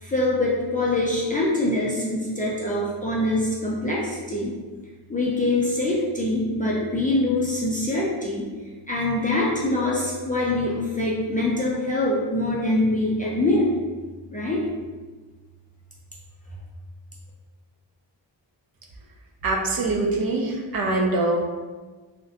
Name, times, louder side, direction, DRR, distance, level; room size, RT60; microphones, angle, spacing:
voice 1, 0.0-4.5 5.1-8.4 8.9-13.7 14.3-14.6, left 2 dB, 20° left, -6 dB, 0.4 m, -24 dB
voice 2, 19.4-21.4, right 2 dB, 55° right, 0 dB, 0.5 m, -23 dB
2.5 x 2.1 x 3.7 m, 1.3 s
wide cardioid pair, 165°, 45 cm